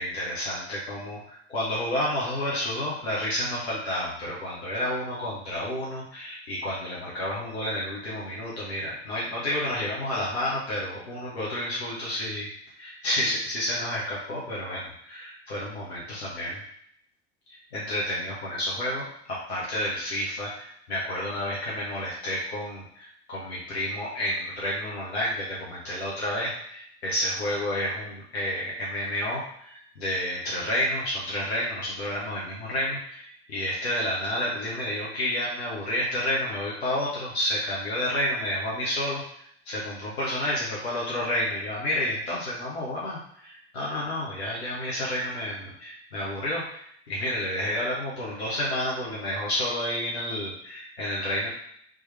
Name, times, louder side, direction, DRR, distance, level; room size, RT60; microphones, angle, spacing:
voice 1, 0.0-12.5 12.8-16.6 17.5-39.2 39.6-51.5, left 1 dB, 75° left, -6 dB, 1.4 m, -30 dB
3.9 x 3.2 x 3.4 m, 0.67 s
figure-of-eight pair, 70°, 32 cm